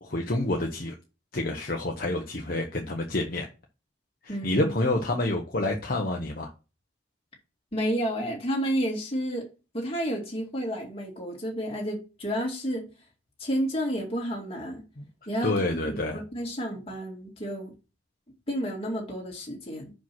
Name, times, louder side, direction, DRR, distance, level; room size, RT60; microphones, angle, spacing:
voice 1, 0.0-0.9 1.3-3.5 4.2-6.5 15.0-15.1 15.4-16.2, left 2 dB, 50° left, 1.0 m, -28 dB
voice 2, 4.3-4.7 7.7-9.5 9.7-12.9 13.4-14.8 15.3-17.7 18.5-19.9, equal, 30° left, 2.4 m, -31 dB
5.8 x 5.1 x 6.0 m
head